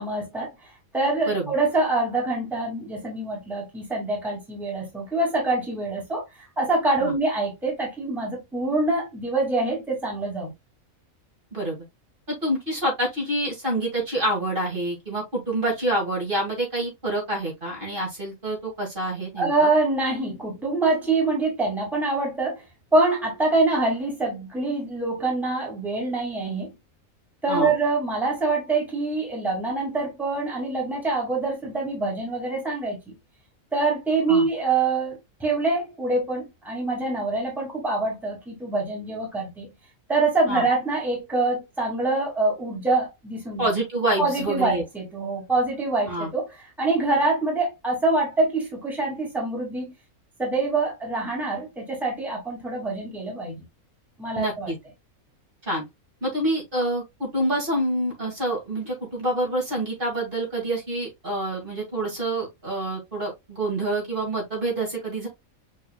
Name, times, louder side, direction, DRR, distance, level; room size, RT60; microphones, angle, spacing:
voice 1, 0.0-6.2 6.6-10.5 19.4-22.6 22.9-26.7 27.4-33.1 33.7-39.7 40.1-43.7 44.2-49.9 50.4-53.6 54.2-54.7, right 3 dB, ahead, 2.0 m, -25 dB
voice 2, 12.3-19.7 27.5-27.7 34.3-34.5 40.5-40.6 43.6-44.8 46.1-46.3 54.3-54.8 55.7-55.8 56.2-65.3, right 1 dB, 40° right, 2.4 m, -27 dB
6.3 x 3.8 x 2.2 m
omnidirectional pair, 1.5 m